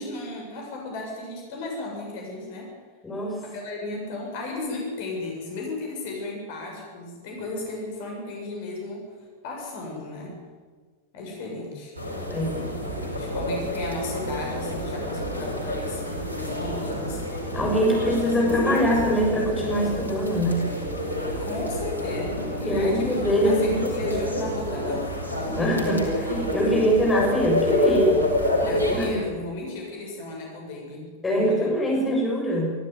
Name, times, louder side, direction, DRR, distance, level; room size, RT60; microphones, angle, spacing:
voice 1, 0.0-2.7 3.4-9.1 9.4-10.4 11.1-11.9 12.6-17.6 18.4-19.0 21.4-23.2 23.4-25.1 25.5-25.8 28.6-31.7 32.0-32.1, left 2 dB, 50° left, 0 dB, 7.1 m, -35 dB
voice 2, 3.0-3.4 12.3-12.6 17.5-20.6 22.7-24.2 25.6-28.2 28.9-29.1 31.2-32.7, equal, 15° left, -2 dB, 7.0 m, -23 dB
sound 1, 11.9-29.1, left 1 dB, 85° right, 5.2 m, -28 dB
24.0 x 15.0 x 9.6 m, 1.5 s
figure-of-eight pair, 90°, 0 cm